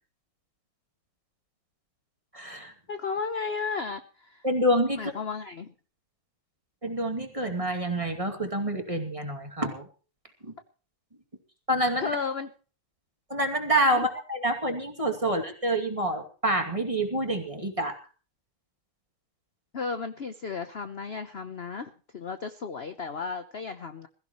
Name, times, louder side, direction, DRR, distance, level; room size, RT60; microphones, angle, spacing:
voice 1, 2.3-2.7 4.4-5.1 6.8-9.9 10.4-10.5 11.7-12.2 13.3-18.0, right 1 dB, 15° right, 4 dB, 2.4 m, -27 dB
voice 2, 2.9-4.4 4.9-5.7 12.0-12.5 19.7-24.1, left 5 dB, 50° left, 8 dB, 0.7 m, -34 dB
21.5 x 15.5 x 3.1 m, 0.38 s
omnidirectional pair, 2.3 m